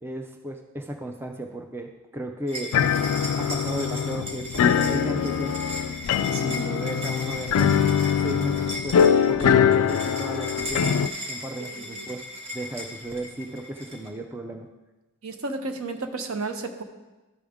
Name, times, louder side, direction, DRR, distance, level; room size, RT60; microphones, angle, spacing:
voice 1, 0.0-3.1 3.4-5.6 6.4-7.7 8.2-10.9 11.3-12.3 12.5-14.7, right 1 dB, 10° right, 4 dB, 0.4 m, -34 dB
sound 1, 2.5-14.1, left 1 dB, 25° right, 1.2 m, -36 dB
sound 2, 2.7-11.1, left 8 dB, 75° left, 0.3 m, -23 dB
voice 2, 11.6-12.1 15.2-16.8, right 3 dB, 70° right, 6 dB, 0.8 m, -33 dB
12.5 x 5.1 x 3.5 m, 1.1 s
head